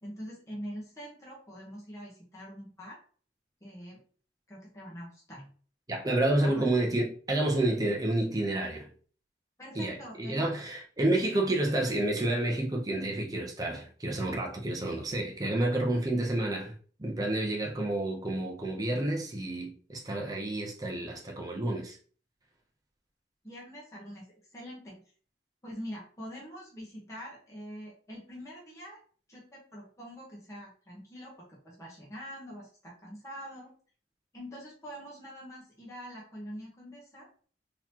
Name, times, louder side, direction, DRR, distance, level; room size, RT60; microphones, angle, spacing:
voice 1, 0.0-3.0 3.6-4.0 4.5-5.5 6.4-6.6 9.6-10.5 23.4-24.2 24.5-25.0 25.6-29.0 29.3-33.7 34.3-37.3, equal, 15° left, 1.1 m, -44 dB
voice 2, 5.9-8.9 9.7-16.7 17.0-22.0, right 1 dB, 20° right, 0.6 m, -29 dB
3.9 x 2.9 x 2.8 m
head